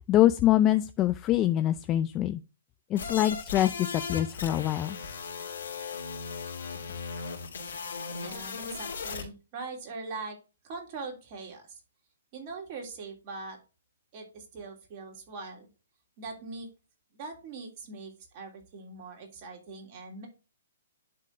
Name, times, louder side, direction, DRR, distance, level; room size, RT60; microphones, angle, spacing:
voice 1, 0.0-2.4 2.9-5.0, left 13 dB, 25° left, 10 dB, 0.4 m, -24 dB
sound 1, 3.0-9.2, left 5 dB, 75° left, 2.6 m, -37 dB
voice 2, 8.2-10.4 10.6-11.8 12.3-13.6 14.1-15.7 16.2-16.7 17.1-20.3, right 3 dB, 40° right, 2 dB, 3.1 m, -41 dB
10.5 x 3.7 x 3.7 m, 0.31 s
hypercardioid pair, 135°, 0 cm